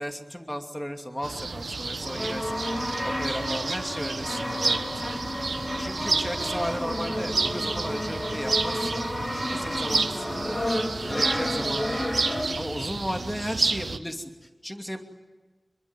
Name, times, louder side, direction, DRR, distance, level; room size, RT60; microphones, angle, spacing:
voice 1, 0.0-2.6 3.0-5.2 5.8-10.5 11.0-12.1 12.6-15.0, equal, 10° left, 4 dB, 2.7 m, -35 dB
sound 1, 1.2-14.0, right 3 dB, 85° right, 1.2 m, -30 dB
Brass instrument, 2.0-12.8, left 1 dB, 30° left, 4.2 m, -31 dB
26.0 x 22.5 x 9.1 m, 1.3 s
wide cardioid pair, 80°, 0 cm